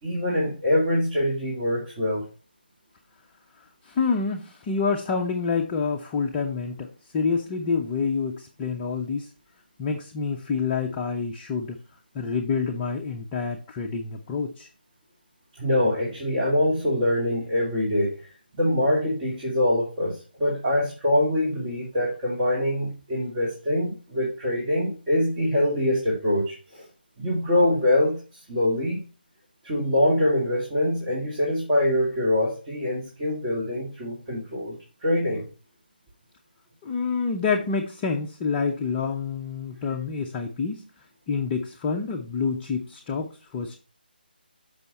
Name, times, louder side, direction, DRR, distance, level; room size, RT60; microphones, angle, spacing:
voice 1, 0.0-2.2 15.6-18.2 18.5-26.8 27.2-29.0 29.6-34.8 35.0-35.5, left 1 dB, 20° right, -6 dB, 2.1 m, -24 dB
voice 2, 3.8-9.3 9.8-11.8 12.1-14.7 36.8-40.8 41.3-43.8, left 5 dB, 15° left, 1 dB, 0.6 m, -27 dB
6.9 x 5.4 x 4.1 m, 0.35 s
figure-of-eight pair, 160°, 6 cm